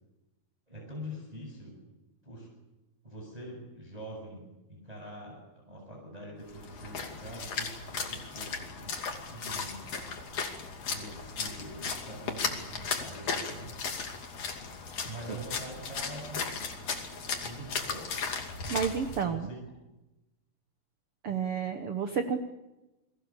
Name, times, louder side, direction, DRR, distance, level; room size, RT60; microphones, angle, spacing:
voice 1, 0.7-1.8 2.2-2.5 3.0-8.9 9.3-10.1 10.8-13.7 15.0-16.8 17.4-18.1 19.2-19.6, right 1 dB, 10° right, -1 dB, 6.9 m, -44 dB
Splash splatter, 6.5-19.2, left 5 dB, 45° left, 3.4 m, -36 dB
voice 2, 18.7-19.5 21.2-22.4, right 7 dB, 85° right, 7 dB, 1.2 m, -30 dB
29.0 x 22.0 x 7.2 m, 1.0 s
omnidirectional pair, 4.5 m